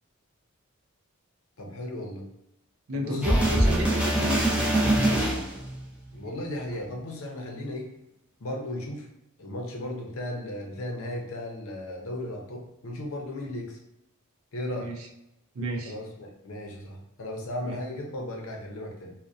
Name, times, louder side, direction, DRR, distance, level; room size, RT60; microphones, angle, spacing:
voice 1, 1.6-2.2 2.9-3.5 6.1-7.9 8.4-9.1 9.4-13.8 14.5-14.9 15.9-19.1, left 1 dB, 70° left, 1 dB, 0.5 m, -35 dB
voice 2, 2.9-4.7 14.7-14.9 15.5-15.9 17.6-17.8, equal, 65° right, 2 dB, 0.4 m, -32 dB
sound 1, 3.2-5.8 6.7-6.8, right 1 dB, 5° right, 0.4 m, -23 dB
2.6 x 2.1 x 2.3 m, 0.86 s
head